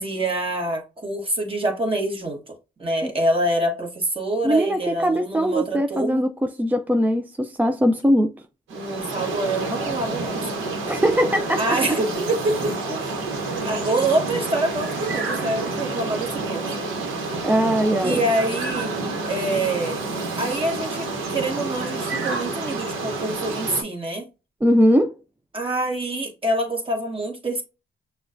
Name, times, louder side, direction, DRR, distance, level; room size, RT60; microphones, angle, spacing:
voice 1, 0.0-2.4 2.8-6.3 8.7-10.4 11.6-13.2 13.6-16.8 18.0-20.0 20.4-24.3 25.5-27.6, right 1 dB, 25° right, 1.5 m, -26 dB
voice 2, 4.4-6.3 6.6-8.3 10.9-11.8 13.5-13.6 17.4-18.2 24.6-25.1, equal, 10° right, 0.3 m, -20 dB
sound 1, 8.7-23.8, right 3 dB, 90° right, 1.0 m, -29 dB
6.1 x 2.3 x 2.5 m
cardioid pair, 90°, 20 cm